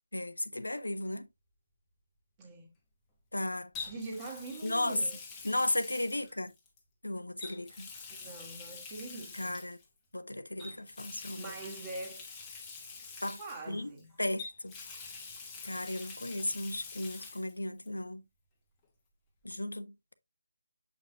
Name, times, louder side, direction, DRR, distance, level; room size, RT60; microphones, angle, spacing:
voice 1, 0.1-1.3 3.3-3.7 4.6-5.0 5.4-6.5 7.0-7.9 9.3-9.8 10.1-11.5 13.2-13.4 13.7-13.9 14.2-14.7 15.6-18.2 19.4-20.1, left 1 dB, 70° left, 0.9 m, -35 dB
Water tap faucet, 0.8-1.0 3.7-6.8 7.4-9.9 10.6-14.0 14.4-17.5 17.8-17.9 19.5-19.6, left 4 dB, 10° left, 1.3 m, -46 dB
voice 2, 2.4-2.7 3.9-5.2 8.1-9.6 11.4-12.2 13.4-14.2, right 2 dB, 15° right, 1.8 m, -43 dB
8.0 x 5.3 x 2.3 m
figure-of-eight pair, 155°, 0 cm